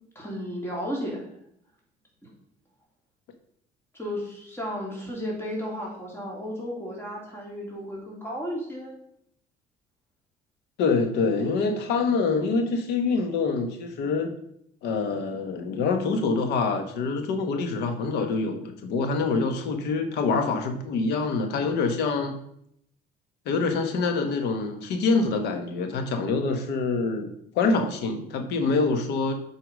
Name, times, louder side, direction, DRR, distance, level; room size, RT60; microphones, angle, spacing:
voice 1, 0.1-1.2 3.9-8.9, equal, 15° left, -3 dB, 2.8 m, -33 dB
voice 2, 10.8-14.3 14.8-22.4 23.4-29.3, left 4 dB, 80° left, 7 dB, 1.3 m, -25 dB
8.1 x 4.9 x 5.2 m, 0.71 s
cardioid pair, 110°, 17 cm